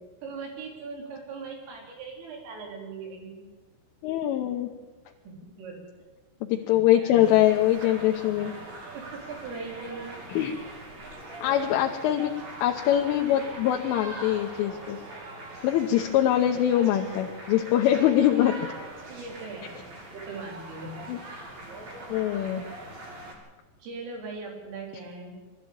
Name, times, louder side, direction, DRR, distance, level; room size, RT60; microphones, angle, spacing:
voice 1, 0.2-3.4 5.2-5.8 6.6-7.4 8.9-10.2 19.1-19.7 20.1-21.1 23.8-25.5, right 4 dB, 75° right, 0 dB, 6.5 m, -40 dB
voice 2, 4.0-4.7 6.5-8.5 10.3-10.6 11.4-12.3 12.6-15.0 15.6-18.6 21.1-21.2 22.1-22.6, left 12 dB, 80° left, 1 dB, 3.4 m, -23 dB
sound 1, 7.2-23.3, right 2 dB, 50° right, 4.4 m, -42 dB
22.0 x 13.5 x 8.8 m, 1.3 s
omnidirectional pair, 6.0 m